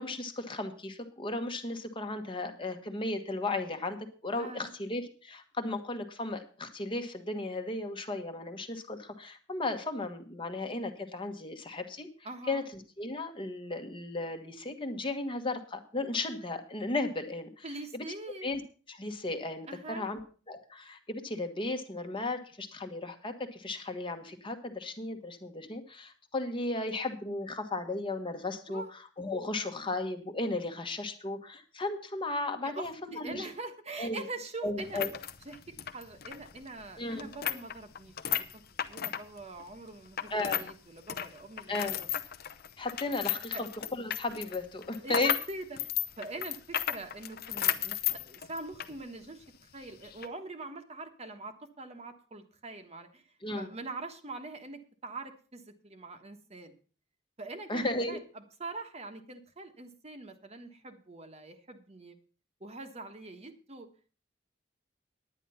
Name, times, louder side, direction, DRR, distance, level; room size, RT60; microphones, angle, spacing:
voice 1, 0.0-12.1 12.5-17.6 17.9-18.0 18.4-18.6 18.9-20.2 20.5-33.5 34.0-34.2 34.6-35.1 37.0-37.3 40.3-40.6 41.7-42.0 42.8-45.3 53.4-53.7 57.7-58.2, left 2 dB, 30° left, 6 dB, 1.3 m, -35 dB
voice 2, 4.4-4.8 12.2-12.6 17.6-18.5 19.7-20.1 28.7-28.9 32.6-35.0 35.5-35.6 35.9-42.1 43.5-43.6 45.0-45.8 46.2-48.0 48.2-49.4 49.7-53.2 53.5-56.7 57.4-62.1 62.6-63.9, right 2 dB, 35° right, 7 dB, 1.3 m, -43 dB
sound 1, 34.8-40.7 41.0-49.0 49.3-49.4 50.0-50.3, left 10 dB, 55° left, 0.7 m, -34 dB
10.0 x 9.9 x 5.6 m, 0.39 s
head